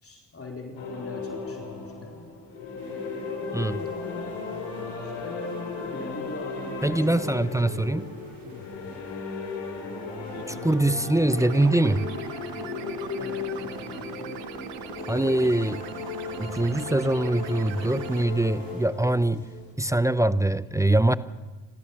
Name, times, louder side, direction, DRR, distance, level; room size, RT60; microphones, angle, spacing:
voice 1, 0.0-2.2 4.7-5.4 5.7-7.8 8.4-8.6 13.2-14.0, left 3 dB, 30° left, 1 dB, 3.8 m, -42 dB
sound 1, 0.7-19.7, left 4 dB, 80° left, 5.4 m, -36 dB
sound 2, 2.8-18.9, right 3 dB, 55° right, 6.2 m, -50 dB
voice 2, 6.8-8.1 10.5-12.1 15.1-15.8 16.4-19.4 19.8-21.2, right 1 dB, 5° right, 14 dB, 0.7 m, -23 dB
sound 3, 10.3-18.2, right 9 dB, 85° right, 1.4 m, -41 dB
28.5 x 14.0 x 7.1 m, 1.3 s
supercardioid pair, 65°, 42 cm